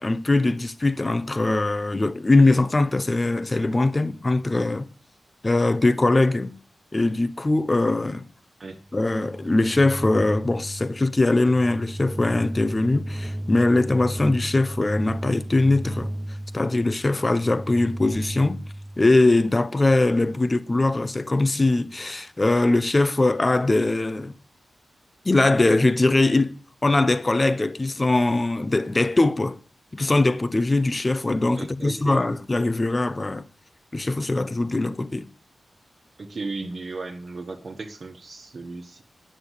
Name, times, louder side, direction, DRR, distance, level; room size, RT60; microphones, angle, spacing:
voice 1, 0.0-4.9 5.4-6.5 6.9-8.3 8.9-16.1 16.5-18.6 19.0-24.3 25.2-26.6 26.8-29.6 29.9-33.5 33.9-35.3, left 2 dB, 25° left, 0.8 m, -21 dB
sound 1, 8.9-19.5, right 1 dB, 15° right, 0.8 m, -34 dB
voice 2, 31.5-32.4 36.2-39.0, right 3 dB, 50° right, 1.5 m, -35 dB
9.9 x 8.9 x 8.4 m
wide cardioid pair, 110°, 0 cm